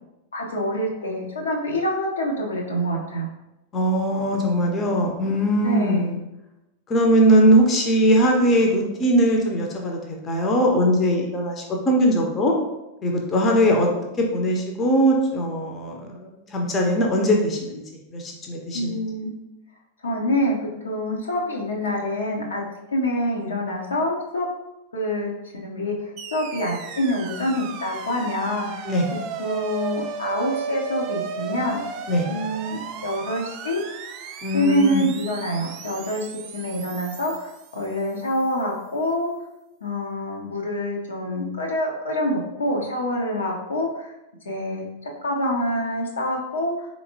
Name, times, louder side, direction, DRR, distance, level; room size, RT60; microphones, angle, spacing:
voice 1, 0.3-3.3 5.6-6.1 18.7-19.3 20.0-22.6 22.9-24.5 24.9-28.9 29.4-31.8 32.3-33.8 34.5-39.3 39.8-44.1 44.4-46.9, equal, 70° left, -1 dB, 0.7 m, -26 dB
voice 2, 3.7-6.2 6.9-12.5 13.0-13.9 14.2-19.0 28.8-29.1 32.1-32.3 34.4-35.1, equal, 25° left, 1 dB, 0.7 m, -20 dB
sound 1, 26.2-38.4, right 7 dB, 40° right, 0.3 m, -35 dB
4.1 x 3.0 x 2.7 m, 0.94 s
figure-of-eight pair, 90°, 0 cm